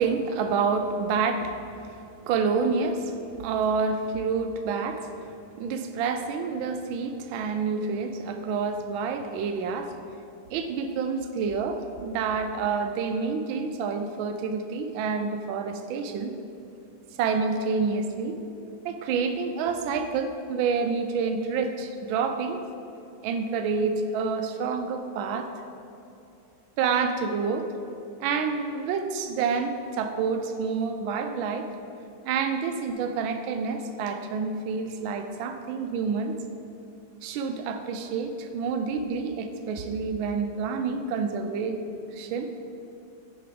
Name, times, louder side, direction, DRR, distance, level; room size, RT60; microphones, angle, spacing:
voice 1, 0.0-5.1 5.6-10.0 10.5-16.3 17.2-18.4 18.8-22.6 23.2-25.5 26.8-27.7 28.2-31.7 32.2-36.4 37.2-42.5, right 5 dB, 80° right, 7 dB, 1.3 m, -28 dB
6.8 x 4.8 x 5.1 m, 2.6 s
omnidirectional pair, 2.2 m